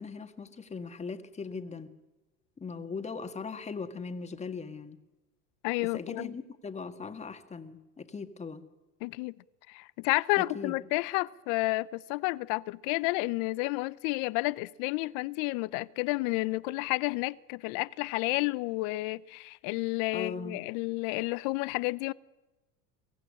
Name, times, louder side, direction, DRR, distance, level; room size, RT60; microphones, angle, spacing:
voice 1, 0.0-1.9 2.6-5.0 5.8-8.7 10.4-10.7 20.1-20.7, left 5 dB, 15° left, 1.8 m, -39 dB
voice 2, 5.6-6.3 9.0-9.3 9.7-22.1, left 22 dB, 60° left, 0.8 m, -31 dB
23.0 x 15.5 x 9.9 m
supercardioid pair, 120°, 38 cm